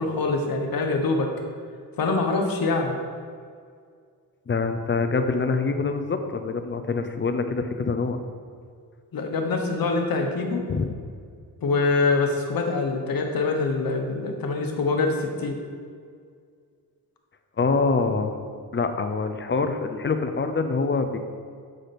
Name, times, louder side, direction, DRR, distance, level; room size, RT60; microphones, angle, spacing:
voice 1, 0.0-1.3 2.0-3.0 9.1-10.7 11.6-15.6, left 3 dB, 70° left, 3 dB, 1.0 m, -24 dB
voice 2, 4.5-8.2 10.7-10.9 17.6-18.4 18.7-21.2, left 4 dB, 30° left, 7 dB, 0.6 m, -25 dB
7.8 x 4.9 x 4.2 m, 2.1 s
cardioid pair, 85°, 36 cm